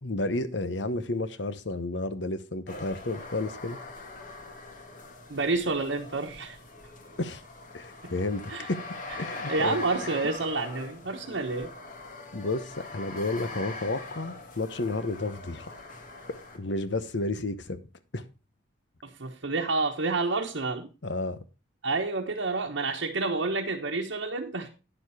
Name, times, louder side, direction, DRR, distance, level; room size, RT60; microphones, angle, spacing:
voice 1, 0.0-3.8 7.2-7.4 7.7-8.4 8.7-8.9 9.2-9.8 12.3-15.7 16.5-17.8 18.1-18.3 21.0-21.4, left 2 dB, 65° left, 1.0 m, -31 dB
sound 1, 2.7-16.6, left 3 dB, 45° left, 1.8 m, -42 dB
voice 2, 5.3-6.6 8.0-8.1 8.5-8.7 9.5-11.7 19.0-20.9 21.8-24.7, right 3 dB, 70° right, 1.2 m, -29 dB
10.0 x 7.1 x 4.8 m
head